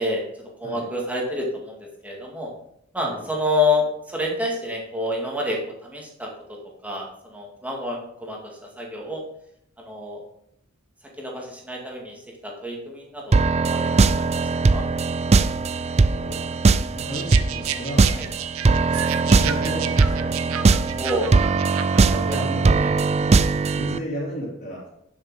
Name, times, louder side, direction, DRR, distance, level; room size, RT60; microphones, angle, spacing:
voice 1, 0.0-2.5 2.9-8.4 8.8-9.2 9.8-10.2 11.2-14.8 18.2-18.3 21.0-21.3 21.7-22.4 22.8-22.9, left 2 dB, 5° right, -2 dB, 2.2 m, -28 dB
sound 1, 13.3-24.0, right 4 dB, 30° right, 0.4 m, -20 dB
voice 2, 16.9-18.1 18.9-21.5 22.1-22.8 23.1-23.4 23.7-24.9, equal, 45° left, -9 dB, 3.8 m, -34 dB
sound 2, 17.1-22.4, right 10 dB, 90° right, 0.7 m, -32 dB
11.0 x 6.7 x 4.9 m, 0.75 s
head